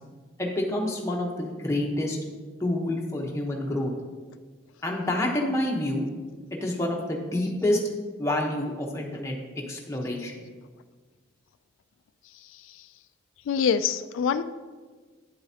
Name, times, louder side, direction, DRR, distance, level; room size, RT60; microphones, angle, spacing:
voice 1, 0.4-2.2 2.6-3.9 4.8-6.0 6.5-7.8 8.2-10.4, left 1 dB, 15° left, -1 dB, 1.0 m, -28 dB
voice 2, 13.5-14.4, left 7 dB, 85° left, 11 dB, 0.3 m, -24 dB
9.0 x 7.8 x 2.8 m, 1.4 s
head